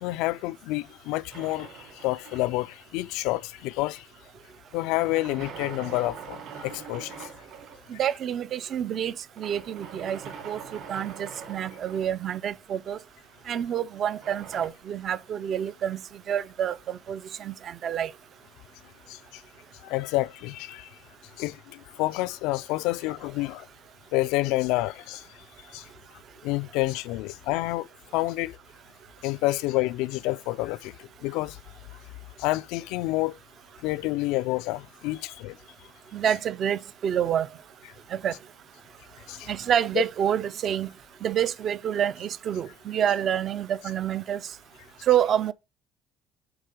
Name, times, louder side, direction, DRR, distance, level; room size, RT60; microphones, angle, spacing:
voice 1, 0.0-4.0 4.7-7.3 19.1-19.2 19.8-20.9 21.4-23.7 24.1-25.3 25.7-25.8 26.4-27.9 28.1-28.6 29.2-31.6 32.4-33.3 33.8-35.6 39.3-39.5, left 19 dB, 85° left, 0.4 m, -29 dB
sound 1, 1.3-2.8 4.7-7.9 9.4-12.6 14.0-14.7, right 6 dB, 60° right, 3.4 m, -43 dB
voice 2, 7.9-10.2 10.4-13.0 13.5-16.0 16.3-18.1 36.1-37.5 38.1-38.4 39.5-40.9 41.2-44.4 45.1-45.5, right 9 dB, 40° right, 0.5 m, -28 dB
8.0 x 3.7 x 5.0 m
cardioid pair, 155°, 0 cm